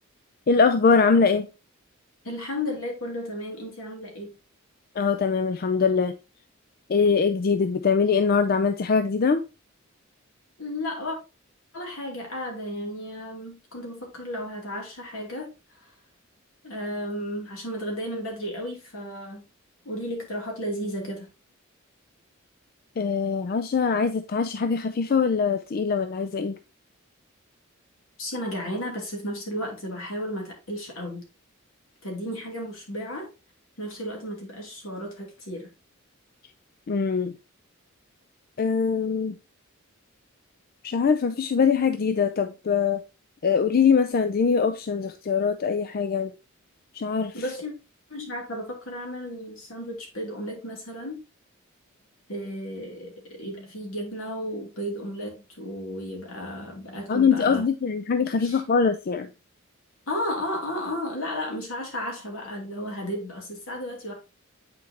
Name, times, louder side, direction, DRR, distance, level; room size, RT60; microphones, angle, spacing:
voice 1, 0.5-1.5 5.0-6.2 6.9-9.4 23.0-26.6 36.9-37.3 38.6-39.4 40.8-43.0 43.4-46.3 47.0-47.4 57.1-59.3, left 5 dB, 45° left, 0.4 m, -22 dB
voice 2, 2.2-4.4 10.6-11.2 11.7-15.5 15.8-15.9 16.6-19.5 19.8-21.3 28.2-31.3 32.0-33.3 33.8-35.7 47.3-47.7 48.1-51.2 52.3-57.6 58.4-58.6 60.1-64.1, equal, 75° left, 2.6 m, -33 dB
8.4 x 4.6 x 2.8 m
head